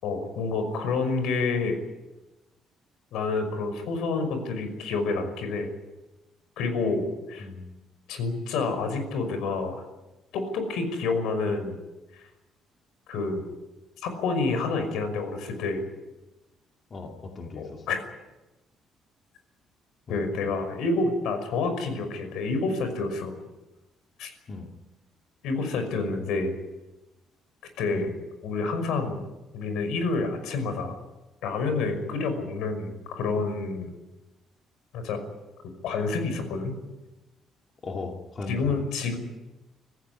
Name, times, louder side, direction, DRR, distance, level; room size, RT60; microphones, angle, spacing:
voice 1, 0.0-1.8 3.1-5.7 6.6-7.5 8.1-9.8 10.3-11.7 13.1-13.4 14.0-15.8 17.6-18.0 20.1-23.3 24.2-24.3 25.4-26.5 27.8-28.1 28.4-29.2 29.5-31.0 31.4-33.9 34.9-35.2 35.8-36.8 38.5-39.2, left 3 dB, 85° left, 8 dB, 5.6 m, -28 dB
voice 2, 7.4-7.7 16.9-17.8 20.1-20.2 24.5-24.7 27.9-28.1 37.8-38.7, left 3 dB, 30° left, 2 dB, 2.3 m, -37 dB
26.0 x 15.5 x 9.7 m, 1.1 s
cardioid pair, 165°, 0 cm